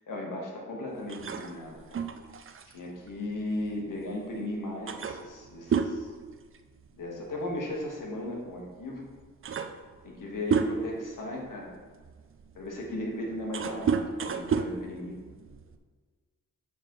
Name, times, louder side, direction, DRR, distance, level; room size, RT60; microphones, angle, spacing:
voice 1, 0.1-2.0 2.7-6.1 6.9-9.1 10.0-11.7 12.5-15.2, left 1 dB, 70° left, -1 dB, 1.5 m, -36 dB
sound 1, 1.1-4.1 4.4-4.5 4.9-7.0 7.3-7.6 8.6-8.7 9.1-11.1 11.7-15.8, right 6 dB, 40° right, 0.5 m, -32 dB
6.9 x 4.7 x 3.1 m, 1.5 s
supercardioid pair, 50°, 33 cm